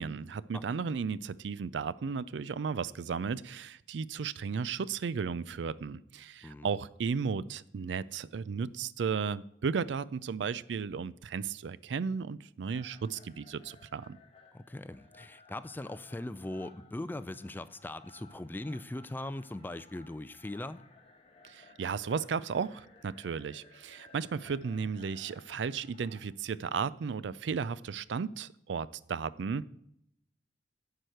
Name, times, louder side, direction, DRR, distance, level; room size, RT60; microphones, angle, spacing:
voice 1, 0.0-14.2 21.4-29.7, right 5 dB, 90° right, 0.4 m, -34 dB
sound 1, 12.7-26.2, left 3 dB, 35° left, 1.2 m, -59 dB
voice 2, 14.5-20.8, left 1 dB, 10° left, 0.3 m, -40 dB
10.0 x 4.8 x 7.7 m
head